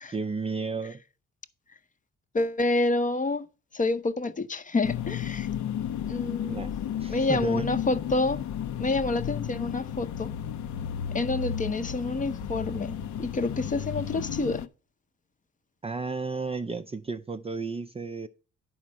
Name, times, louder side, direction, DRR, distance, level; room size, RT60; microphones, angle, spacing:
voice 1, 0.1-1.0 6.5-6.7 7.0-7.7 15.8-18.3, right 4 dB, 20° right, 0.4 m, -33 dB
voice 2, 2.3-3.5 3.7-5.5 6.1-6.7 7.1-8.4 8.8-10.3 11.1-12.9 13.2-14.7, left 2 dB, 25° left, 0.7 m, -28 dB
sound 1, 4.8-14.7, left 9 dB, 70° left, 0.6 m, -33 dB
10.0 x 4.4 x 6.2 m
cardioid pair, 90°, 30 cm